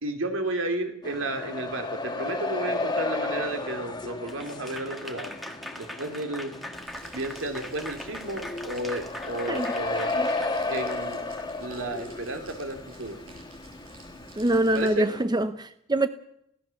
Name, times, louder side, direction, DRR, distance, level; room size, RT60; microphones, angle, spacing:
voice 1, 0.0-5.3 5.8-6.5 7.1-10.1 10.7-11.3 11.6-13.2 14.7-15.2, right 2 dB, 70° right, 3.0 m, -33 dB
sound 1, 1.0-15.2, left 3 dB, 20° left, 2.1 m, -34 dB
Applause / Crowd, 4.3-11.5, left 1 dB, ahead, 1.6 m, -41 dB
Crumpling crinkling, 6.7-14.9, right 3 dB, 85° right, 6.9 m, -52 dB
voice 2, 14.4-16.1, right 1 dB, 20° right, 0.7 m, -24 dB
22.5 x 17.0 x 7.2 m
head